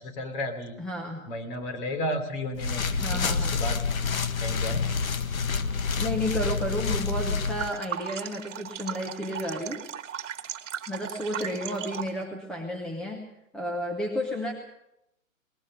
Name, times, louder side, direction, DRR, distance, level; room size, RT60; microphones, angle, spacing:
voice 1, 0.0-0.8 1.3-3.8 4.4-4.9, left 1 dB, 35° left, 8 dB, 3.2 m, -33 dB
voice 2, 0.8-1.2 3.0-3.6 6.0-9.8 10.9-13.3 13.5-14.5, equal, ahead, 2 dB, 0.9 m, -32 dB
sound 1, 2.5-7.7, left 5 dB, 80° left, 1.7 m, -28 dB
sound 2, 7.4-12.2, right 9 dB, 60° right, 1.5 m, -37 dB
20.5 x 19.5 x 6.6 m, 0.84 s
hypercardioid pair, 155°, 41 cm